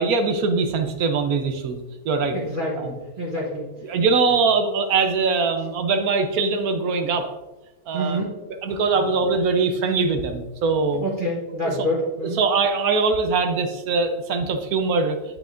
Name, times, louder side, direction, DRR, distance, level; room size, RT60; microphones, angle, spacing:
voice 1, 0.0-1.8 2.0-2.4 2.8-2.9 3.8-7.3 7.9-8.2 8.6-11.0 11.6-11.7 12.4-15.2, right 4 dB, 70° right, 7 dB, 1.1 m, -22 dB
voice 2, 2.3-3.9 7.9-8.3 9.0-9.1 11.0-12.4, equal, 35° right, -4 dB, 1.1 m, -27 dB
8.5 x 6.6 x 2.5 m, 1.1 s
omnidirectional pair, 1.7 m